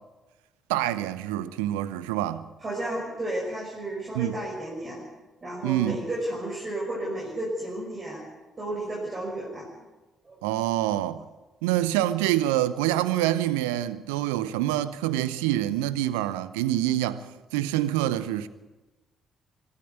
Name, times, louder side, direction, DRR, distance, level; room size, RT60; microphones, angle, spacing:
voice 1, 0.7-2.5 4.1-4.4 5.6-6.0 10.4-11.2 11.6-17.3 17.5-18.5, right 13 dB, 70° right, 0.8 m, -26 dB
voice 2, 2.6-5.0 5.4-8.3 8.6-9.7 10.2-10.4, right 1 dB, 35° right, 5.9 m, -32 dB
24.5 x 13.0 x 8.5 m
figure-of-eight pair, 45°, 0 cm